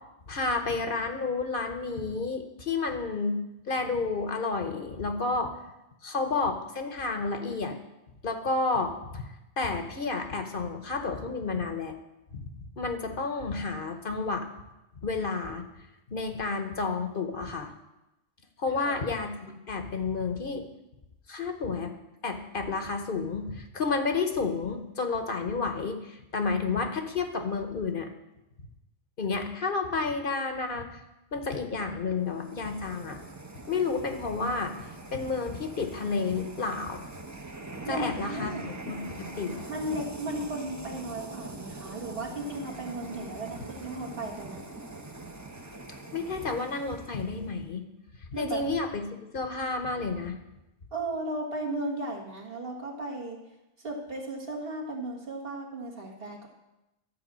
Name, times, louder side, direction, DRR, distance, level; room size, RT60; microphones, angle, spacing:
voice 1, 0.3-5.5 6.0-7.8 8.2-9.3 9.6-11.9 12.3-12.5 12.8-14.5 15.0-15.7 16.1-17.7 18.6-20.6 21.3-21.9 22.2-28.1 29.2-31.0 31.3-33.2 33.7-34.7 35.1-37.0 37.9-38.6 38.9-39.6 46.1-47.8 48.4-50.4, left 4 dB, 55° left, 6 dB, 1.1 m, -31 dB
sound 1, 32.2-47.6, right 2 dB, 20° right, 0.7 m, -43 dB
voice 2, 37.8-38.7 39.7-44.6 48.3-48.6 50.9-53.4 53.8-56.5, right 2 dB, 60° right, 0 dB, 1.8 m, -35 dB
11.5 x 4.7 x 7.4 m, 0.95 s
omnidirectional pair, 1.1 m